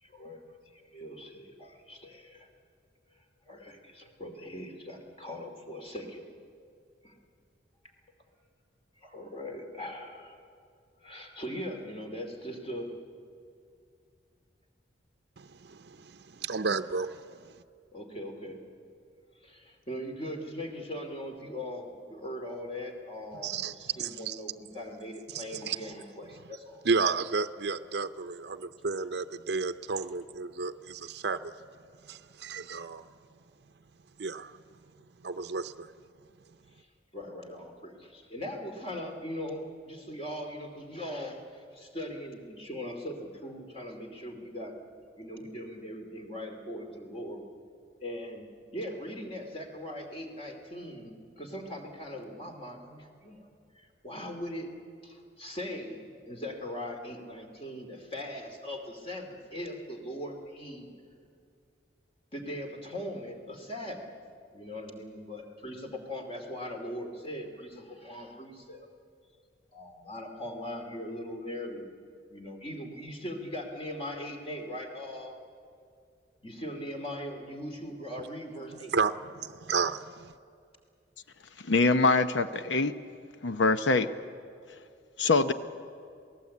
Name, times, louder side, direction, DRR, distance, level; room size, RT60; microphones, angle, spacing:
voice 1, 0.0-0.4 0.9-2.5 3.2-6.2 7.0-7.1 9.0-10.4 11.0-12.9 17.9-18.6 19.4-26.8 37.1-44.8 45.2-47.4 48.0-48.5 48.7-54.7 55.0-60.9 62.3-64.1 64.5-68.9 69.7-71.9 72.3-75.4 76.4-78.9, equal, 30° left, 2.6 m, -40 dB
voice 2, 15.4-17.5 23.4-24.4 25.3-25.8 26.8-31.5 32.0-33.1 34.2-34.6 35.2-35.9 78.9-80.3, right 5 dB, 65° right, 0.6 m, -32 dB
voice 3, 81.7-82.9 83.4-84.1 85.2-85.5, left 3 dB, 90° left, 0.8 m, -24 dB
27.5 x 18.5 x 8.5 m
head